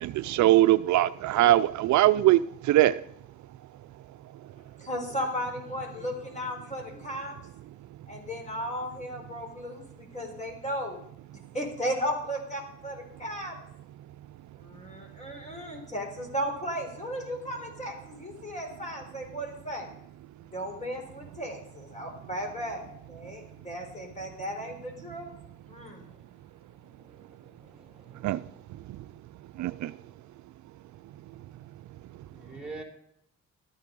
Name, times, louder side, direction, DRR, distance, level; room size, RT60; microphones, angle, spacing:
voice 1, 0.0-2.4 2.7-2.9 28.2-28.4 29.6-29.9, right 14 dB, 70° right, 0.5 m, -21 dB
voice 2, 4.8-7.4 8.1-11.0 11.5-13.5 14.6-19.9 20.5-25.3 25.7-26.1, equal, 25° left, 4.1 m, -35 dB
voice 3, 27.0-28.3 32.3-32.8, right 3 dB, 5° right, 3.8 m, -46 dB
13.0 x 9.8 x 5.3 m
cardioid pair, 90°, 30 cm